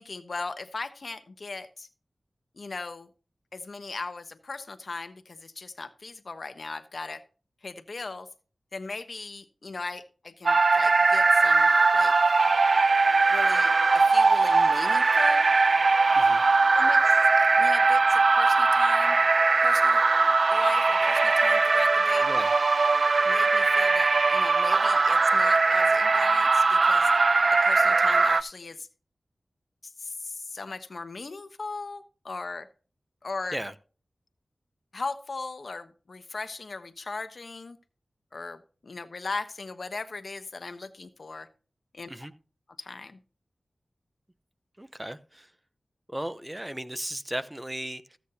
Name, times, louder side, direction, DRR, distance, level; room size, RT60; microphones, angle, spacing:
voice 1, 0.0-1.9 2.5-3.1 3.5-7.2 7.6-8.3 8.7-12.1 13.3-15.5 16.7-19.2 19.6-20.0 20.5-22.2 23.2-27.1 27.6-28.9 30.0-32.7 33.2-33.6 34.9-37.8 38.3-41.5 41.9-42.1 42.8-43.2, left 3 dB, 65° left, 1.0 m, -38 dB
sound 1, 10.5-28.4, right 3 dB, 65° right, 0.4 m, -21 dB
voice 2, 22.2-22.5 33.5-33.7 42.1-42.3 44.8-45.5 46.1-48.2, right 1 dB, 15° right, 0.9 m, -36 dB
15.0 x 8.2 x 2.8 m
wide cardioid pair, 65°, 0 cm